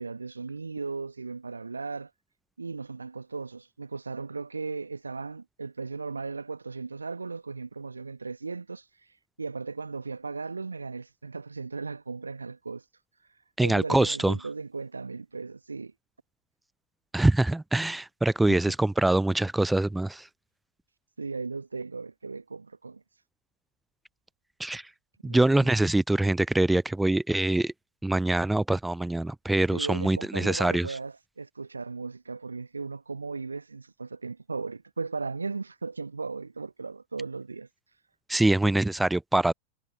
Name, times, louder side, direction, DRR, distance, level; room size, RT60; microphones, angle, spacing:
voice 1, 0.0-2.1 2.6-8.8 9.4-12.8 13.6-15.9 18.5-18.6 21.2-23.0 25.2-25.5 29.7-37.7, right 4 dB, 80° right, 1.4 m, -36 dB
voice 2, 13.6-14.4 17.1-20.2 24.6-24.8 25.2-27.7 28.0-31.0 38.3-39.5, right 2 dB, 5° right, 0.6 m, -24 dB
figure-of-eight pair, 90°, 0 cm